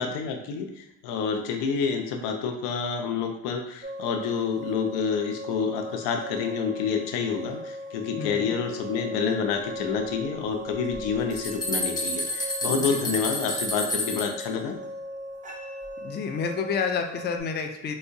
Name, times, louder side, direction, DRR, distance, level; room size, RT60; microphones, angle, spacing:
voice 1, 0.0-14.8, left 6 dB, 80° left, 5 dB, 0.6 m, -28 dB
sound 1, 3.8-17.4, equal, 20° right, 0.6 m, -38 dB
voice 2, 8.2-8.6 12.9-13.1 16.0-17.9, left 6 dB, 25° left, 5 dB, 0.4 m, -29 dB
sound 2, 10.9-14.4, left 1 dB, 10° left, 1.0 m, -30 dB
4.5 x 2.1 x 2.6 m, 0.87 s
supercardioid pair, 75°, 41 cm